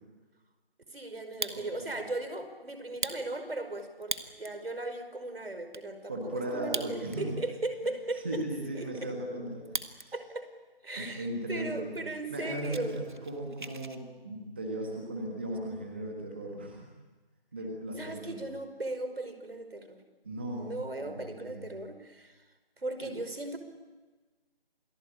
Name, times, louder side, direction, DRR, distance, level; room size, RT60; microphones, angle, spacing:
voice 1, 0.9-8.4 8.7-9.1 10.1-10.5 10.8-13.1 18.0-20.0 20.5-22.4 22.8-23.6, right 2 dB, 75° right, 8 dB, 5.2 m, -37 dB
Fire, 1.2-2.0 2.4-2.5 2.9-4.6 5.1-5.2 5.4-5.8 6.6-7.4 7.7-7.8 8.3-10.1 10.4-10.8 11.4-11.5 11.8-11.9 12.2-14.0, right 3 dB, 55° right, 1.8 m, -39 dB
voice 2, 1.5-1.9 6.1-7.3 8.2-9.7 10.0-10.1 10.9-12.0 12.3-16.9 17.5-18.4 20.2-20.7 21.0-21.7 23.0-23.1, right 1 dB, 10° right, 0 dB, 1.5 m, -37 dB
28.5 x 19.5 x 8.7 m, 1.3 s
figure-of-eight pair, 175°, 30 cm